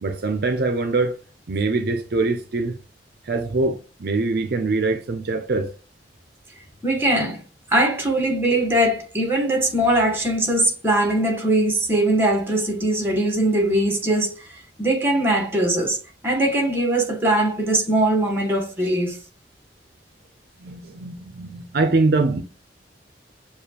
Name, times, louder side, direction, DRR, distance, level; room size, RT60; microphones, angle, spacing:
voice 1, 0.0-1.2 1.5-2.8 3.3-5.7 20.6-22.4, right 3 dB, 60° right, 0.5 m, -23 dB
voice 2, 6.8-7.4 7.7-19.2, right 1 dB, 10° right, 1.2 m, -21 dB
6.9 x 2.3 x 2.8 m
head